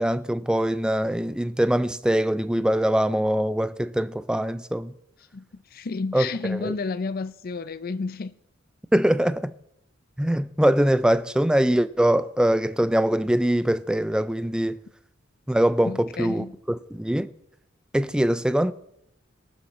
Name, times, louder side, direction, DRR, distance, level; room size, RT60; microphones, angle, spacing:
voice 1, 0.0-4.9 6.1-6.7 8.9-9.5 10.2-14.8 15.5-17.3 17.9-18.7, right 1 dB, 5° right, 0.3 m, -23 dB
voice 2, 5.7-8.3 15.8-16.6, left 4 dB, 50° left, 0.5 m, -31 dB
18.5 x 7.2 x 4.2 m
head